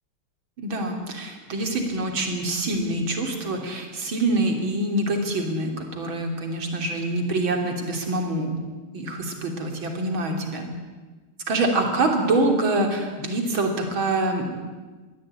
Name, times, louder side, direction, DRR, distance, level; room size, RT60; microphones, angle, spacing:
voice 1, 0.6-8.5 8.9-10.7 11.5-14.6, right 2 dB, 70° right, 3 dB, 3.9 m, -25 dB
23.0 x 15.5 x 8.8 m, 1.3 s
omnidirectional pair, 2.3 m